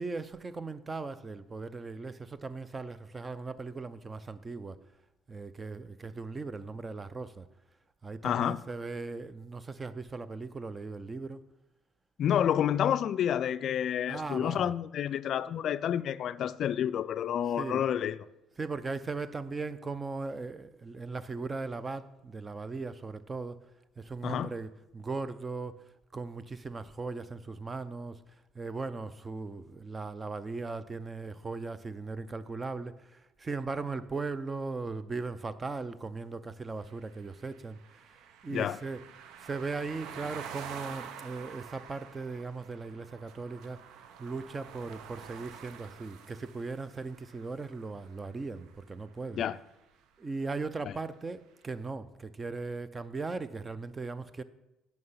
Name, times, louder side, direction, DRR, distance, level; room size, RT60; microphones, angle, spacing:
voice 1, 0.0-4.8 5.3-7.5 8.0-11.4 14.0-14.7 17.5-17.9 18.6-23.6 24.0-25.8 26.1-28.2 28.5-39.1 39.4-43.8 44.2-49.4 50.2-54.4, right 3 dB, 25° right, 0.6 m, -38 dB
voice 2, 8.2-8.6 12.2-18.2 24.2-24.5 38.5-38.8 49.4-49.6 50.9-51.0, left 9 dB, 55° left, 0.3 m, -29 dB
sound 1, 36.8-48.8, right 8 dB, 70° right, 0.6 m, -48 dB
9.3 x 5.8 x 5.6 m
supercardioid pair, 85°, 0 cm